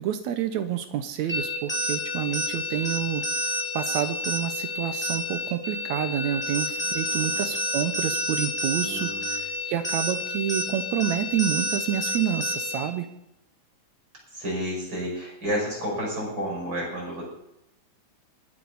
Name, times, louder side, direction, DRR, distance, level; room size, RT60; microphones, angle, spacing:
voice 1, 0.0-3.2 3.8-9.1 9.7-13.1, right 10 dB, 75° right, 10 dB, 2.0 m, -28 dB
sound 1, 1.3-12.9, left 1 dB, 5° left, 1.5 m, -29 dB
voice 2, 6.8-7.5 8.6-9.5 14.3-17.2, equal, 35° right, -3 dB, 6.7 m, -31 dB
21.5 x 8.2 x 4.1 m, 0.85 s
omnidirectional pair, 3.5 m